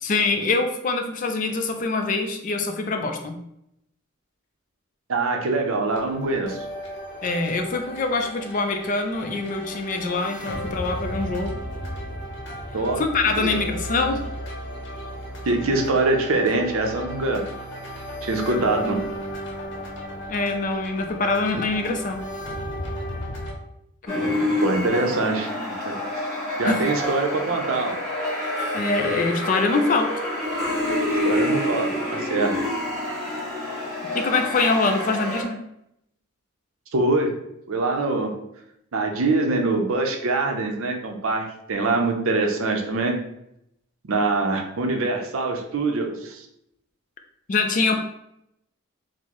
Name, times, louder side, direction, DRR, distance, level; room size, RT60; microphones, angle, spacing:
voice 1, 0.0-3.4 7.2-11.6 13.0-14.3 20.3-22.3 24.1-24.6 26.6-26.8 28.7-30.1 34.1-35.6 47.5-48.0, left 3 dB, 35° left, 5 dB, 0.3 m, -24 dB
voice 2, 5.1-6.6 12.7-13.0 13.4-13.6 15.5-17.4 18.2-19.0 24.6-25.5 25.8-26.0 26.6-28.0 31.2-32.5 36.9-37.3 37.7-38.3 38.9-43.2 44.0-46.5, right 3 dB, 75° right, 3 dB, 0.6 m, -24 dB
sound 1, 5.9-23.5, equal, 55° left, 0.7 m, -34 dB
sound 2, 24.1-35.4, left 1 dB, ahead, 1.4 m, -27 dB
4.4 x 2.0 x 2.9 m, 0.79 s
head